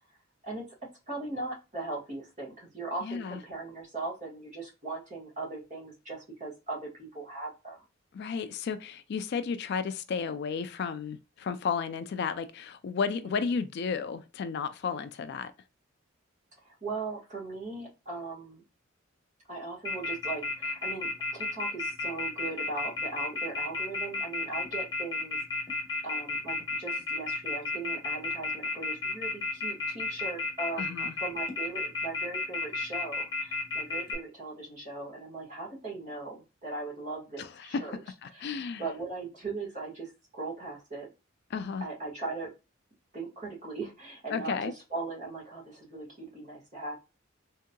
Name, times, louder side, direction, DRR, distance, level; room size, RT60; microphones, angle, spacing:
voice 1, 1.1-7.8 13.2-13.3 16.6-18.6 19.5-38.0 38.3-41.1 41.8-42.5 43.1-47.0, right 3 dB, 35° right, 1.6 m, -39 dB
voice 2, 3.0-3.4 8.1-15.5 30.8-31.1 37.4-37.8 38.2-38.8 41.5-41.8 44.3-44.7, left 5 dB, 55° left, 0.3 m, -33 dB
Telephone, 19.8-34.1, left 3 dB, 20° left, 1.1 m, -32 dB
3.6 x 2.7 x 2.2 m
head